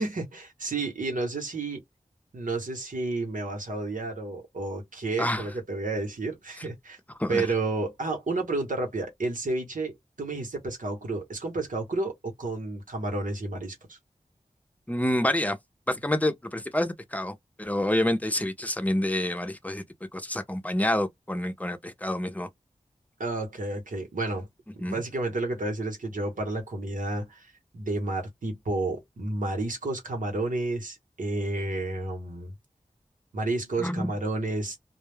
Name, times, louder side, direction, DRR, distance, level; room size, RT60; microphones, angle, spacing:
voice 1, 0.0-1.8 2.3-7.0 7.3-14.0 23.2-24.5 24.7-32.5 33.3-34.8, right 2 dB, 80° right, 0.9 m, -31 dB
voice 2, 14.9-15.6 15.9-19.8 20.1-22.5 24.8-25.0 33.8-34.1, left 1 dB, 10° left, 0.6 m, -28 dB
2.2 x 2.0 x 3.3 m
cardioid pair, 40°, 14 cm